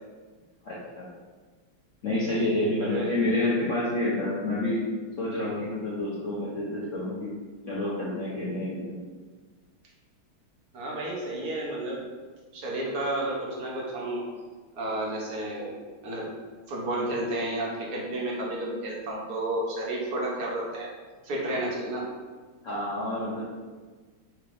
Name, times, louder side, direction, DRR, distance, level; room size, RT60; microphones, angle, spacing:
voice 1, 0.6-1.1 2.0-4.8 5.2-7.3 7.7-9.0 22.6-23.4, left 1 dB, 70° left, -8 dB, 0.7 m, -28 dB
voice 2, 2.8-3.1 10.7-12.1 12.5-14.2 14.8-15.8 16.0-16.3 16.7-20.9 21.2-22.0, right 1 dB, 60° right, -3 dB, 1.1 m, -31 dB
5.9 x 3.3 x 2.5 m, 1.4 s
omnidirectional pair, 2.4 m